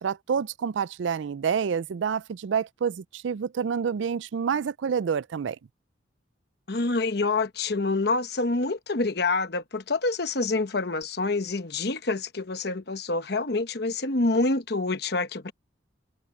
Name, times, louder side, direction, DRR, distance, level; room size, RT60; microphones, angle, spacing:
voice 1, 0.0-5.6, right 6 dB, 75° right, 0.4 m, -28 dB
voice 2, 6.7-15.5, left 3 dB, 55° left, 1.1 m, -27 dB
head